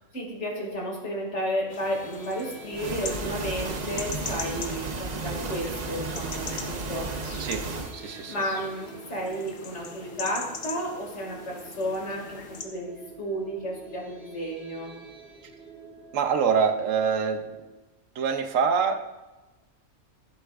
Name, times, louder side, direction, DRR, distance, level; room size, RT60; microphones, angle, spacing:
voice 1, 0.1-7.1 8.0-14.9, equal, 60° left, -1 dB, 2.5 m, -32 dB
sound 1, 1.6-17.8, right 4 dB, 5° left, 2.8 m, -48 dB
sound 2, 1.7-12.6, left 5 dB, 80° left, 1.4 m, -42 dB
sound 3, 2.7-8.0, right 3 dB, 40° right, 0.6 m, -33 dB
voice 2, 7.9-8.3 16.1-17.5 18.2-19.1, right 6 dB, 80° right, 7 dB, 1.1 m, -25 dB
14.5 x 7.8 x 2.4 m, 1.1 s
omnidirectional pair, 1.3 m